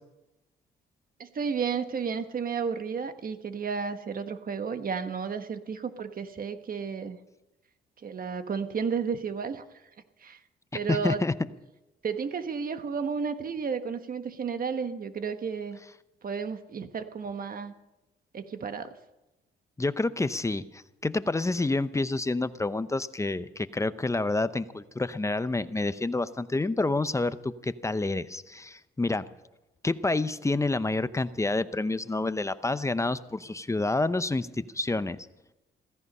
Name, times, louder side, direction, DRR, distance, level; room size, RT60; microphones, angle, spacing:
voice 1, 1.2-7.2 8.0-9.6 10.2-10.4 10.7-11.2 12.0-15.8 16.2-17.7 18.3-18.9, right 6 dB, 45° right, 9 dB, 1.4 m, -32 dB
voice 2, 10.9-11.3 19.8-29.2 29.8-35.3, left 2 dB, 15° left, 14 dB, 0.7 m, -28 dB
16.5 x 15.0 x 5.5 m, 0.99 s
cardioid pair, 90°, 20 cm